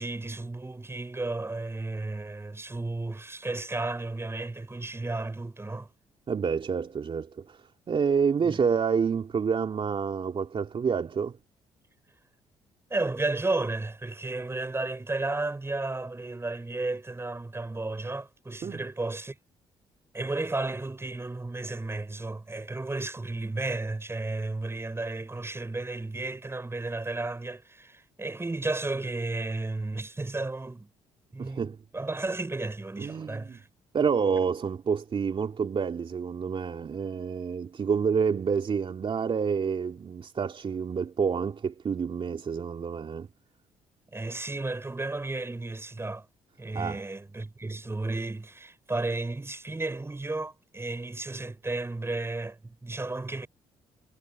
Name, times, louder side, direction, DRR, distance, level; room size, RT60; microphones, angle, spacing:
voice 1, 0.0-5.9 8.4-8.6 12.9-19.4 20.1-30.9 31.3-33.7 44.1-46.3 46.6-53.5, right 2 dB, 20° right, 7.7 m, -33 dB
voice 2, 6.3-11.4 18.6-18.8 31.4-31.7 33.0-33.6 33.9-43.3 46.7-47.0, right 6 dB, 50° right, 3.3 m, -28 dB
supercardioid pair, 65°, 12 cm